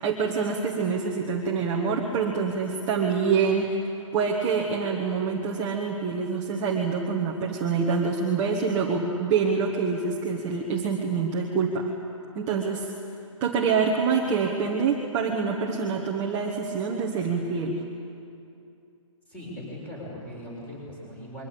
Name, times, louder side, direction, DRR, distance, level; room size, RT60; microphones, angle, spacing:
voice 1, 0.0-3.8 4.1-11.9 12.3-12.9 13.4-17.8, right 5 dB, 15° right, -1 dB, 1.5 m, -26 dB
voice 2, 19.3-21.5, equal, 10° left, -4 dB, 6.7 m, -39 dB
26.5 x 23.5 x 8.7 m, 2.6 s
hypercardioid pair, 170°, 17 cm